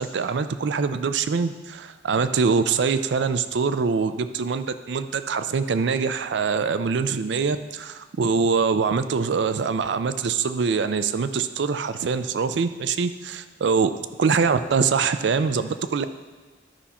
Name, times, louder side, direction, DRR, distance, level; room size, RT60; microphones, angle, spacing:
voice 1, 0.0-13.9 14.2-16.1, right 5 dB, 65° right, 11 dB, 0.4 m, -24 dB
12.5 x 5.7 x 4.2 m, 1.4 s
head